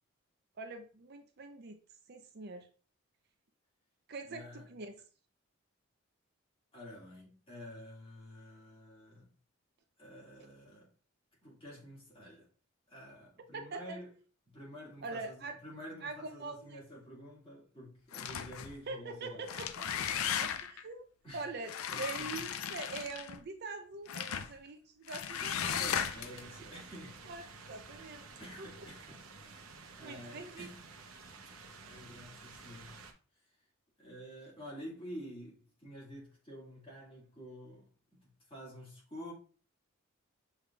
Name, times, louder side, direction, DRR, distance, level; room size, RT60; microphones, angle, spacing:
voice 1, 0.6-1.8 2.1-2.7 4.1-4.9 13.5-14.0 15.0-15.6 16.0-16.8 18.9-19.9 20.4-21.1 21.3-21.7 22.0-25.8 27.3-27.4 27.7-28.3 30.0-30.7, right 3 dB, 50° right, 0.5 m, -43 dB
voice 2, 4.3-4.7 6.7-9.3 10.0-10.9 11.4-12.5 12.9-14.1 14.5-19.7 21.2-21.5 21.9-22.5 25.8-27.3 28.4-30.8 31.9-33.0 33.3-33.6 34.0-37.9 38.2-39.3, equal, 25° left, 1.9 m, -49 dB
sound 1, 18.1-18.8 19.3-20.8 21.7-23.4 24.1-24.5 25.1-26.4, left 8 dB, 80° left, 0.4 m, -36 dB
sound 2, 25.3-33.1, right 4 dB, 85° right, 0.8 m, -52 dB
6.6 x 3.3 x 2.3 m
head